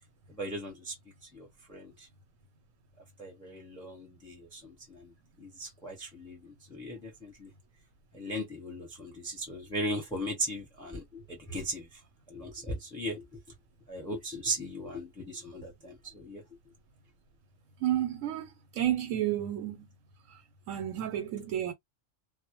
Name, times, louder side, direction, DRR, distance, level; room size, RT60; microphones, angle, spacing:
voice 1, 0.3-1.0 1.3-2.1 3.2-5.1 5.4-7.5 8.1-12.0 12.3-13.4 13.9-16.4, right 1 dB, 5° left, 0.8 m, -38 dB
voice 2, 17.8-19.9 20.3-20.4 20.7-21.7, right 11 dB, 85° right, 1.0 m, -31 dB
2.2 x 2.0 x 2.9 m
omnidirectional pair, 1.3 m